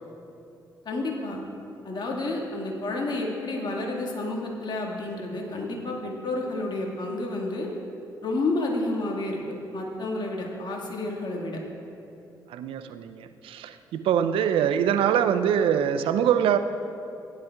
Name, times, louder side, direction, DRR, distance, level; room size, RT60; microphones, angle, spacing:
voice 1, 0.9-1.4 1.8-7.7 8.2-9.4 9.7-11.6, left 2 dB, 50° left, -1 dB, 1.9 m, -30 dB
voice 2, 12.5-16.6, right 9 dB, 65° right, 9 dB, 0.5 m, -24 dB
16.5 x 9.9 x 2.4 m, 2.8 s
hypercardioid pair, 45°, 10 cm